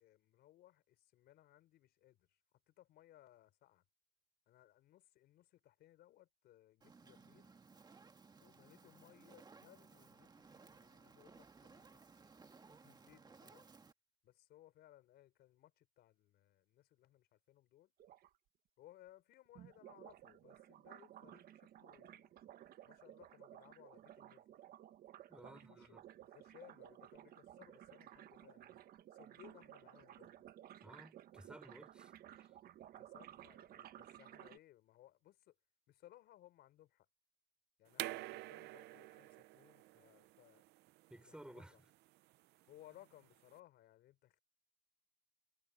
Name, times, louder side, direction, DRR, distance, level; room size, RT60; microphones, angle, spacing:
voice 1, 0.0-3.8 4.5-7.6 8.4-12.0 12.7-13.7 14.2-17.9 18.8-22.3 22.8-24.5 25.3-28.8 29.1-30.5 32.9-35.6 35.9-37.1 37.8-40.6 41.2-41.9 42.7-44.4, left 14 dB, 75° left, 4.7 m, -64 dB
Fire, 6.8-13.9, right 4 dB, 25° right, 1.7 m, -61 dB
sound 1, 18.0-18.3 19.5-34.6, right 12 dB, 65° right, 1.4 m, -57 dB
voice 2, 25.3-26.0 30.8-32.1 32.4-32.5 41.1-41.7, right 1 dB, 5° right, 5.0 m, -56 dB
sound 2, 37.9-43.5, right 18 dB, 80° right, 0.6 m, -49 dB
cardioid pair, 110°, 17 cm